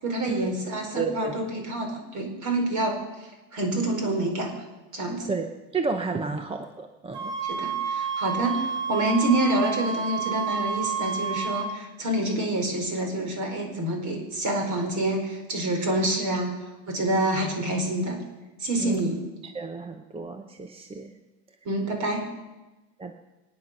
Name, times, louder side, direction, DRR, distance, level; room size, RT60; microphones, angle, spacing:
voice 1, 0.0-4.6 4.9-5.3 7.5-16.5 16.9-18.2 18.6-19.2 21.6-22.2, right 1 dB, 40° right, 3 dB, 4.5 m, -27 dB
voice 2, 0.9-1.4 5.3-5.5 5.7-7.4 18.8-19.0 19.4-21.2 23.0-23.2, right 4 dB, 15° right, 7 dB, 0.7 m, -31 dB
sound 1, 7.1-11.7, right 6 dB, 80° right, 4.5 m, -30 dB
25.0 x 9.7 x 5.9 m, 1.1 s
cardioid pair, 145°, 46 cm